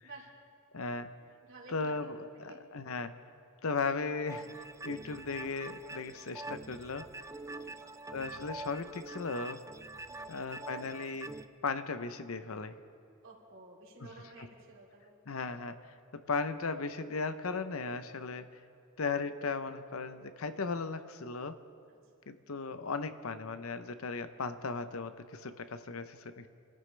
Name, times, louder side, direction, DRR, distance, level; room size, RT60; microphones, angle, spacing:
voice 1, 0.7-1.1 1.7-3.1 3.6-4.5 4.8-7.1 8.1-9.6 10.3-11.3 11.6-12.8 15.3-15.7 16.1-18.5 19.0-21.6 22.3-26.5, left 4 dB, 75° left, 10 dB, 0.8 m, -36 dB
voice 2, 1.4-2.1 2.5-3.0 7.6-7.9 10.1-10.4 13.2-15.2 21.9-22.3, right 3 dB, 65° right, -3 dB, 3.2 m, -54 dB
sound 1, 4.3-11.5, right 2 dB, 15° right, 0.4 m, -45 dB
28.5 x 14.5 x 3.3 m, 2.5 s
head